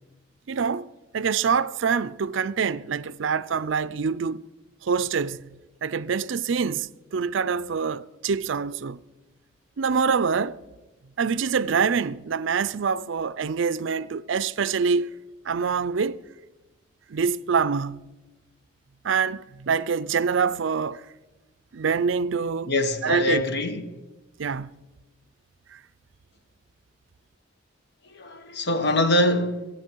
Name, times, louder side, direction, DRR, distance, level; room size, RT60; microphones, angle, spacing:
voice 1, 0.5-0.9 1.1-4.5 4.8-9.0 9.8-10.6 11.2-15.1 15.5-16.2 17.1-18.0 19.0-21.1 21.7-22.7 23.0-23.4 24.4-24.7 25.7-25.8, right 5 dB, 70° right, 0.5 m, -25 dB
voice 2, 22.7-24.0 28.1-29.7, left 1 dB, 55° left, 1.2 m, -24 dB
27.5 x 9.3 x 4.6 m
head